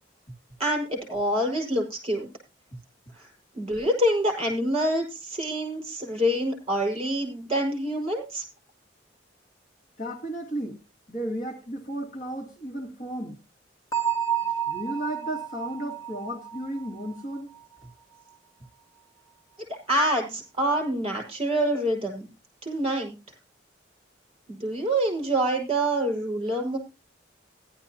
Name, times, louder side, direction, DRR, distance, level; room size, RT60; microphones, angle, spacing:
voice 1, 0.6-2.3 3.1-3.3 3.5-8.4 19.9-22.3 22.6-23.1 24.5-26.8, right 1 dB, 30° right, 5.2 m, -26 dB
voice 2, 10.0-10.8 11.1-13.4 14.7-17.6, right 1 dB, 40° left, 2.2 m, -34 dB
Bell, 13.9-17.6, right 9 dB, 20° left, 1.8 m, -31 dB
16.0 x 11.5 x 2.9 m
head